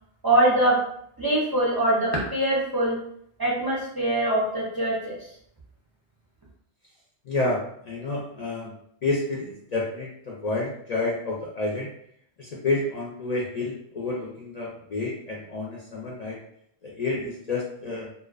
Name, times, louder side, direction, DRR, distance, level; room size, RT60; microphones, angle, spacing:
voice 1, 0.2-0.8 1.2-3.0 3.4-5.2, right 1 dB, 30° right, -6 dB, 0.4 m, -23 dB
voice 2, 7.3-8.7 9.0-11.9 12.4-16.4 16.8-18.1, left 2 dB, 55° left, -4 dB, 0.5 m, -29 dB
2.4 x 2.2 x 2.3 m, 0.68 s
omnidirectional pair, 1.1 m